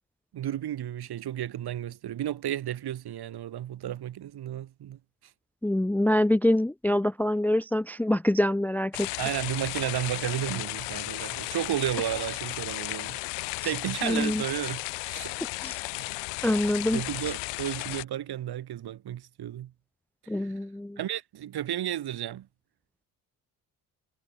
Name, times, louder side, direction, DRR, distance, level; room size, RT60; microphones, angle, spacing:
voice 1, 0.3-5.0 9.2-13.3 13.6-15.4 15.9-16.1 16.9-19.7 20.3-20.5 21.0-22.5, right 11 dB, 65° right, 4.1 m, -33 dB
voice 2, 5.6-9.1 14.0-14.4 15.6-15.8 16.4-17.0 20.3-21.0, left 1 dB, 5° left, 0.5 m, -25 dB
sound 1, 8.9-18.0, left 31 dB, 90° left, 0.6 m, -34 dB
supercardioid pair, 70°, 41 cm